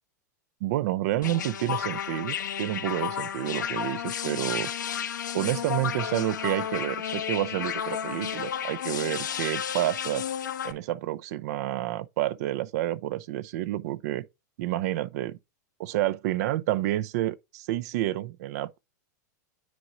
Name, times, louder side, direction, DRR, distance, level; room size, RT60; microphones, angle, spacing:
voice 1, 0.6-4.7 5.3-10.2 10.6-14.2 14.6-15.4 15.8-18.8, right 14 dB, 60° right, 0.7 m, -29 dB
sound 1, 1.2-10.7, left 9 dB, 85° left, 1.0 m, -32 dB
9.4 x 4.8 x 2.6 m
hypercardioid pair, 105°, 10 cm